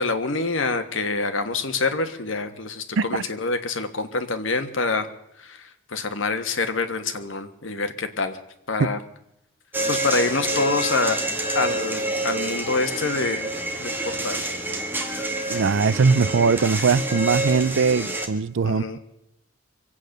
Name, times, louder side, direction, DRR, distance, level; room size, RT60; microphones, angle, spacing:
voice 1, 0.0-5.1 5.4-8.4 8.7-9.0 9.9-11.2 11.5-13.5 13.8-14.5 18.6-19.0, left 3 dB, 70° left, 1.4 m, -26 dB
sound 1, 9.7-18.3, right 2 dB, 10° right, 1.5 m, -28 dB
voice 2, 15.5-18.8, right 5 dB, 65° right, 0.5 m, -20 dB
24.0 x 8.7 x 6.5 m
head